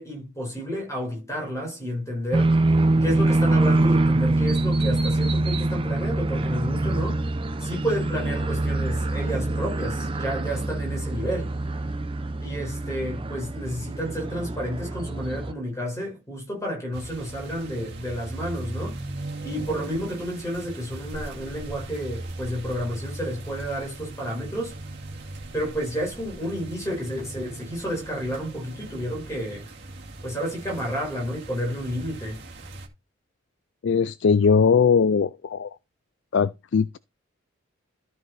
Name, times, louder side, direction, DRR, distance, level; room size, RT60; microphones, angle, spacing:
voice 1, 0.0-2.6 3.0-7.2 7.6-11.5 12.4-19.0 19.4-24.8 25.5-29.7 30.2-32.4, equal, 15° left, 4.8 m, -31 dB
sound 1, 2.3-15.5, right 2 dB, 25° right, 0.7 m, -24 dB
sound 2, 16.9-32.9, right 2 dB, 50° right, 2.3 m, -39 dB
voice 2, 33.8-35.8 36.3-37.0, left 6 dB, 60° left, 0.4 m, -20 dB
13.5 x 4.7 x 4.2 m
head